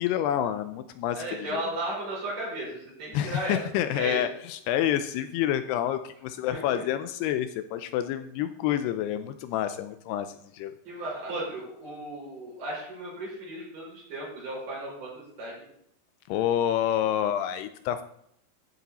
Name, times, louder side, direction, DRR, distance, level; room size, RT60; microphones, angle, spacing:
voice 1, 0.0-1.6 3.1-10.7 16.3-18.0, left 11 dB, 80° left, 10 dB, 2.5 m, -28 dB
voice 2, 1.1-3.7 3.9-4.2 6.5-6.8 10.8-15.5, right 1 dB, 50° right, -4 dB, 6.4 m, -35 dB
13.5 x 7.2 x 4.2 m, 0.72 s
omnidirectional pair, 4.9 m